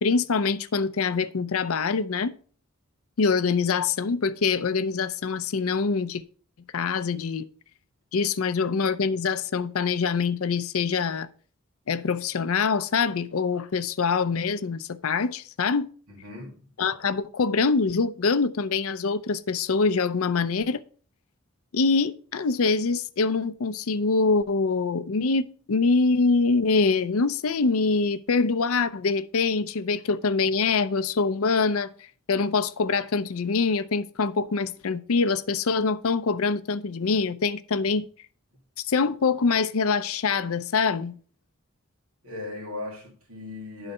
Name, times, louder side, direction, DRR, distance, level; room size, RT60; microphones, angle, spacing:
voice 1, 0.0-2.3 3.2-6.2 6.7-7.5 8.1-11.3 11.9-15.9 16.8-20.8 21.7-31.9 32.3-38.1 38.8-41.2, left 4 dB, 80° left, 0.5 m, -24 dB
voice 2, 16.1-16.6 42.2-43.9, left 2 dB, 85° right, 2.4 m, -37 dB
11.0 x 4.0 x 5.4 m
head